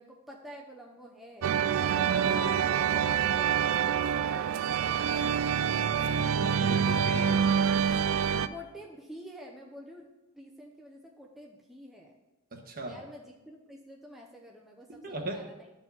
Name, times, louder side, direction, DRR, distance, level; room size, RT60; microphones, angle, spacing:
voice 1, 0.0-1.5 1.8-5.4 6.9-7.7 8.5-10.0 10.3-12.2 12.8-15.7, equal, ahead, -2 dB, 0.7 m, -48 dB
sound 1, 1.4-8.5, right 7 dB, 65° right, 0.3 m, -26 dB
voice 2, 5.7-7.3 12.5-13.0 15.0-15.4, right 1 dB, 40° right, 2 dB, 1.3 m, -39 dB
10.5 x 4.4 x 5.7 m, 1.0 s
head